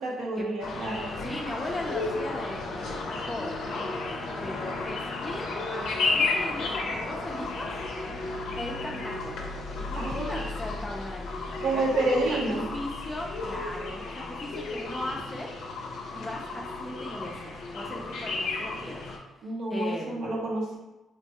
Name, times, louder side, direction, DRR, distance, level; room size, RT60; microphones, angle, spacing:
voice 1, 0.0-1.1 9.9-10.5 11.6-12.6 19.4-20.8, right 2 dB, 75° right, -3 dB, 0.7 m, -29 dB
sound 1, 0.6-19.2, left 3 dB, 75° left, 0.5 m, -33 dB
voice 2, 1.2-3.9 4.4-7.7 8.6-9.3 9.8-15.5 16.1-19.1 19.7-20.4, left 1 dB, 15° left, -2 dB, 0.4 m, -38 dB
3.1 x 2.2 x 2.8 m, 1.0 s
cardioid pair, 90°, 0 cm